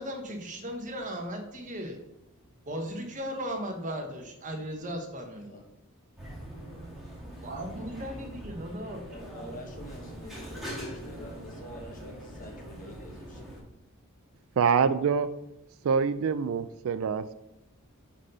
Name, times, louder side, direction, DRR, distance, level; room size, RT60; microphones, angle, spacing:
voice 1, 0.0-2.0 2.7-5.5 7.4-9.0, equal, 35° right, 3 dB, 1.2 m, -36 dB
sound 1, 6.2-13.6, equal, ahead, 2.0 m, -42 dB
voice 2, 9.1-13.4, equal, 35° left, 1 dB, 1.4 m, -46 dB
voice 3, 14.6-15.3 15.8-17.3, right 6 dB, 65° right, 13 dB, 0.3 m, -25 dB
6.3 x 4.0 x 5.6 m, 0.86 s
head